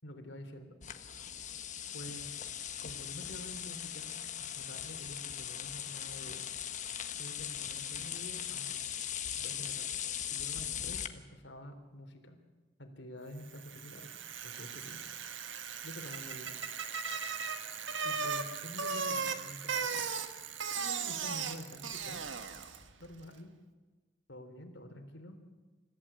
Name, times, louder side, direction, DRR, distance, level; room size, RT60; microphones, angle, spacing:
voice 1, 0.0-0.7 1.9-2.4 2.8-4.1 4.4-6.4 6.9-8.8 9.4-10.0 10.3-12.4 12.8-14.2 14.4-15.0 15.8-16.6 18.0-20.1 20.8-22.3 23.0-23.5 24.3-25.4, equal, 65° left, 6 dB, 3.6 m, -48 dB
sound 1, 0.8-11.1, left 9 dB, 40° left, 1.4 m, -39 dB
Bicycle, 13.5-22.9, right 6 dB, 80° right, 1.7 m, -37 dB
28.5 x 15.0 x 8.8 m, 1.3 s
head